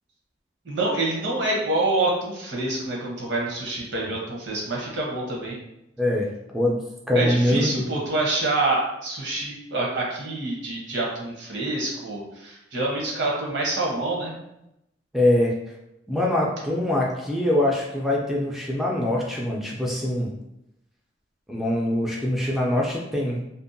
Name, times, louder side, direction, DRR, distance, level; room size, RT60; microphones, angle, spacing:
voice 1, 0.6-5.6 7.1-14.4, right 2 dB, 75° right, -3 dB, 0.8 m, -26 dB
voice 2, 6.0-6.3 6.5-6.8 7.1-7.8 15.1-15.5 16.1-20.3 21.5-23.4, left 1 dB, ahead, -3 dB, 0.3 m, -23 dB
2.6 x 2.1 x 2.5 m, 0.85 s
head